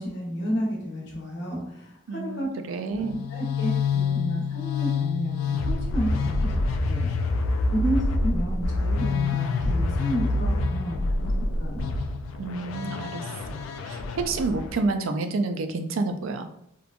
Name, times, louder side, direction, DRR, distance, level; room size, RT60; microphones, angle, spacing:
voice 1, 0.0-2.5 2.9-6.5 6.9-7.1 7.7-11.3 11.6-11.9, equal, 60° left, -3 dB, 0.9 m, -31 dB
voice 2, 2.1-3.2 12.4-13.2 13.5-16.5, right 3 dB, 85° right, 6 dB, 0.4 m, -29 dB
sound 1, 3.0-14.9, left 3 dB, 90° left, 0.3 m, -27 dB
3.0 x 2.2 x 2.4 m, 0.74 s
head